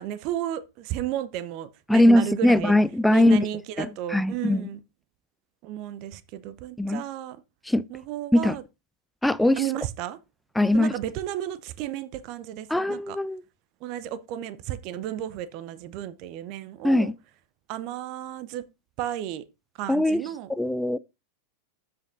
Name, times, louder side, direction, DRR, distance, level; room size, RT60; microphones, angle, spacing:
voice 1, 0.0-2.7 3.1-4.8 5.6-7.4 7.9-8.6 9.6-10.2 10.7-13.2 13.8-17.1 17.7-18.6 19.0-19.4 19.7-20.5, right 12 dB, 40° right, 0.7 m, -33 dB
voice 2, 1.9-3.5 3.8-3.9 4.1-4.6 6.8-7.0 7.7-7.8 8.3-8.6 9.2-9.6 10.6-10.9 12.7-13.4 16.8-17.1 19.9-20.2 20.6-21.0, left 1 dB, 5° left, 0.3 m, -20 dB
13.0 x 5.2 x 2.6 m
figure-of-eight pair, 90°, 0 cm